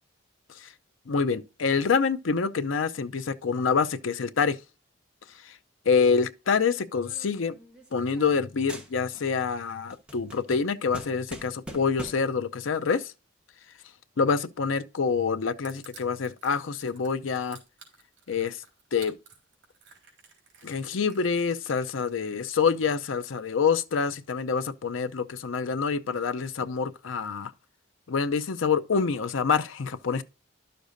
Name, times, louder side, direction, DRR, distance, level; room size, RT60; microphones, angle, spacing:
voice 1, 1.1-4.6 5.4-5.5 5.9-7.6 7.9-13.1 14.2-17.6 18.3-18.6 18.9-19.1 20.6-27.5 28.1-30.2, left 5 dB, 85° left, 0.6 m, -26 dB
sound 1, 7.0-8.4 8.7-9.4 9.7-12.4, equal, 5° right, 1.2 m, -44 dB
Crushing, 15.6-22.4, right 6 dB, 65° right, 3.6 m, -52 dB
11.5 x 6.6 x 2.6 m
head